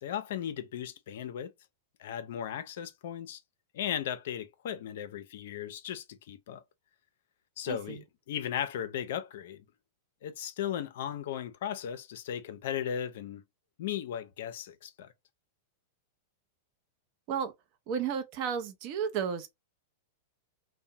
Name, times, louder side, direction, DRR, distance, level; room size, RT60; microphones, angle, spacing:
voice 1, 0.0-1.5 2.0-3.4 3.7-6.6 7.6-9.6 10.2-13.4 13.8-15.1, left 10 dB, 65° left, 0.4 m, -36 dB
voice 2, 7.7-8.0 17.3-17.5 17.9-19.5, right 7 dB, 50° right, 0.5 m, -33 dB
2.6 x 2.0 x 2.7 m
hypercardioid pair, 105°, 0 cm